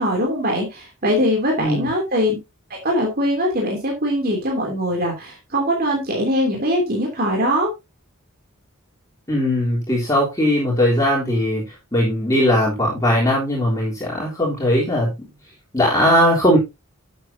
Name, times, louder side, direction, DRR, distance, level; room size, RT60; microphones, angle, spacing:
voice 1, 0.0-2.4 2.8-7.7, equal, 45° right, 0 dB, 3.0 m, -21 dB
voice 2, 1.6-1.9 9.3-11.6 11.9-15.3 15.7-16.6, equal, 15° left, -5 dB, 3.6 m, -19 dB
12.0 x 8.1 x 2.8 m, 0.22 s
head